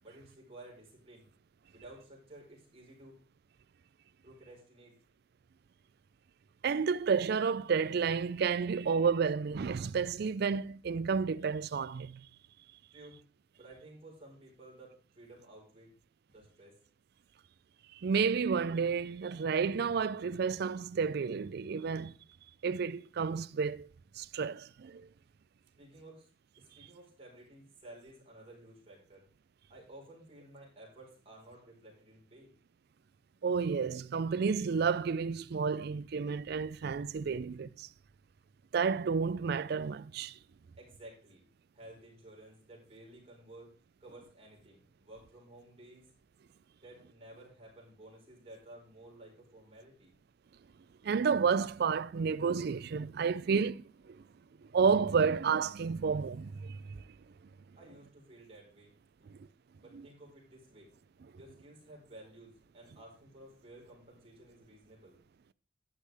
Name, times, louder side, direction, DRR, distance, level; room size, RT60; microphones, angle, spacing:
voice 1, 0.0-1.3 1.7-3.2 4.2-5.0 12.9-13.2 13.5-15.9 16.3-16.7 25.8-26.3 26.6-29.2 29.7-32.5 40.8-41.4 41.7-43.7 44.0-46.1 46.8-50.1 57.8-58.9 59.2-59.4 59.8-60.9 61.3-65.2, right 1 dB, 30° right, 4.6 m, -54 dB
voice 2, 6.6-12.2 18.0-22.1 22.6-23.9 24.2-25.1 33.4-37.9 38.7-40.4 51.0-54.2 54.7-57.0, right 5 dB, 55° right, 0.4 m, -31 dB
12.0 x 9.9 x 3.4 m
head